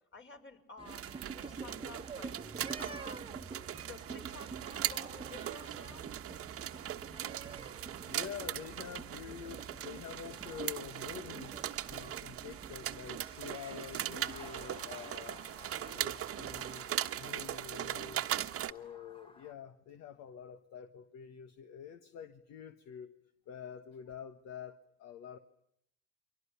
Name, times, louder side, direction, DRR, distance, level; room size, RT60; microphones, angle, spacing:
voice 1, 0.1-2.4 2.8-3.4 3.7-6.1 17.6-18.0, left 3 dB, 40° left, 5.5 m, -52 dB
sound 1, 0.8-16.8, right 4 dB, 20° right, 1.3 m, -48 dB
sound 2, 0.9-18.7, right 12 dB, 50° right, 1.3 m, -40 dB
voice 2, 1.4-1.7 8.1-15.5 15.7-18.3 18.6-23.2 23.5-25.4, left 8 dB, 60° left, 1.5 m, -47 dB
Motor vehicle (road) / Siren, 14.2-19.5, left 3 dB, 20° left, 1.4 m, -56 dB
29.5 x 23.5 x 7.0 m
supercardioid pair, 80°, 29 cm